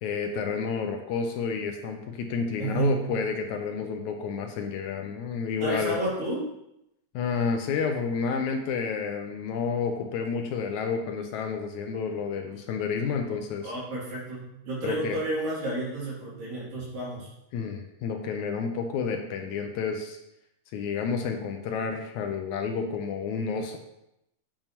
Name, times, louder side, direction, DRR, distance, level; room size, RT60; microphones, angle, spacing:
voice 1, 0.0-6.0 7.1-13.7 14.8-15.2 17.5-20.2 20.7-23.8, left 5 dB, 80° left, 4 dB, 1.7 m, -30 dB
voice 2, 2.6-3.1 5.6-6.4 13.6-17.3, right 2 dB, 75° right, -7 dB, 4.4 m, -31 dB
8.8 x 7.0 x 3.0 m, 0.84 s
omnidirectional pair, 4.0 m